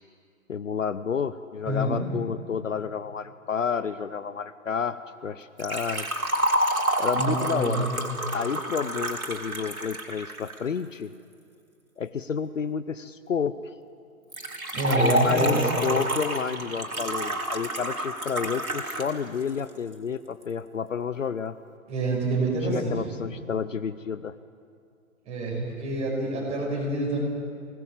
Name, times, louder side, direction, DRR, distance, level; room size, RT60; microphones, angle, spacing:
voice 1, 0.5-6.1 7.0-7.9 8.3-11.1 12.0-13.5 14.9-21.5 22.7-24.3, left 6 dB, 65° left, 14 dB, 0.8 m, -30 dB
voice 2, 1.7-2.1 7.2-7.9 14.7-15.7 21.9-23.1 25.3-27.2, right 2 dB, 15° right, -3 dB, 5.6 m, -27 dB
Liquid, 5.6-10.6 14.3-19.1 19.4-19.5 20.4-20.5, right 1 dB, 85° right, 3.5 m, -28 dB
26.0 x 19.0 x 7.5 m, 2.3 s
figure-of-eight pair, 135°, 42 cm